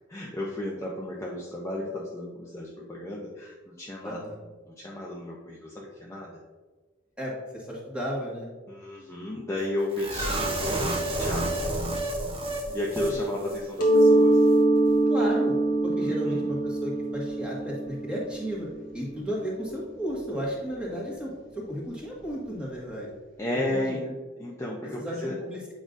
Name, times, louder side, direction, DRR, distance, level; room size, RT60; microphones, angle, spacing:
voice 1, 0.1-4.2 4.6-6.4 8.7-11.7 12.5-14.4 16.0-16.5 23.4-24.1 24.4-25.4, left 1 dB, 15° left, -4 dB, 0.6 m, -33 dB
voice 2, 4.0-4.4 7.2-8.5 12.6-12.8 15.1-15.6 15.8-18.7 18.9-23.1 23.7-24.1 25.0-25.6, equal, 5° right, -5 dB, 1.7 m, -34 dB
sound 1, 10.0-13.2 13.4-13.6 14.0-14.1, right 1 dB, 30° right, 0.8 m, -30 dB
Mallet percussion, 13.8-19.3, right 2 dB, 45° left, 1.3 m, -23 dB
8.6 x 5.1 x 2.6 m, 1.3 s
head